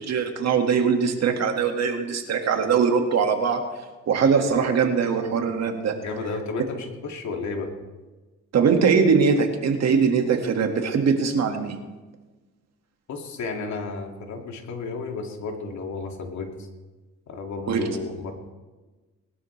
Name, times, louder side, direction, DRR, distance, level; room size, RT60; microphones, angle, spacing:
voice 1, 0.1-3.6 4.1-6.0 8.5-11.8 17.7-17.9, right 5 dB, 60° right, 4 dB, 2.0 m, -21 dB
voice 2, 6.0-7.7 13.1-16.7 17.3-18.3, left 4 dB, 65° left, 2 dB, 2.4 m, -32 dB
21.0 x 12.5 x 3.3 m, 1.2 s
cardioid pair, 90°, 30 cm